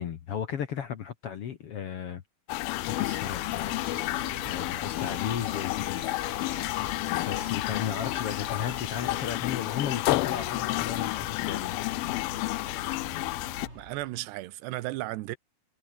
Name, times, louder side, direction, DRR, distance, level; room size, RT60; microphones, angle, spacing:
voice 1, 0.0-2.2 3.0-3.8 4.5-6.0 7.1-11.8, left 8 dB, 75° left, 1.3 m, -35 dB
sound 1, 2.5-13.7, left 20 dB, 90° left, 2.1 m, -31 dB
sound 2, 2.8-14.1, right 1 dB, 15° right, 7.6 m, -47 dB
sound 3, 2.8-9.3, right 5 dB, 40° right, 4.6 m, -50 dB
voice 2, 13.7-15.4, right 17 dB, 85° right, 3.1 m, -34 dB
omnidirectional pair, 4.8 m